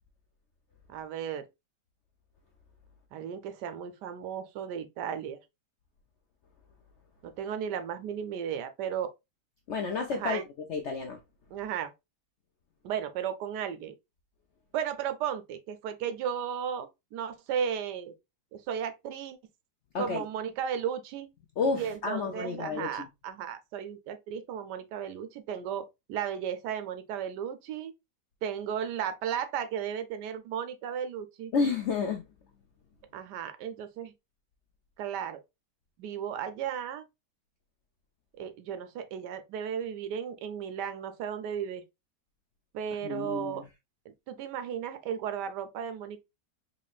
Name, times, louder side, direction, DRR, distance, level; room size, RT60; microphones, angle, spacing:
voice 1, 0.9-1.5 3.1-5.4 7.2-9.1 10.1-10.5 11.5-11.9 12.8-13.9 14.7-18.1 18.5-19.4 20.0-21.3 21.7-27.9 28.4-31.5 33.1-34.1 35.0-35.4 36.0-37.1 38.4-41.8 42.7-43.6 44.3-46.2, right 8 dB, 80° right, 1.2 m, -35 dB
voice 2, 9.7-10.4 10.7-11.2 19.9-20.2 21.6-23.1 31.5-32.2 43.0-43.6, left 4 dB, 70° left, 0.6 m, -30 dB
4.0 x 3.2 x 2.3 m
omnidirectional pair, 1.8 m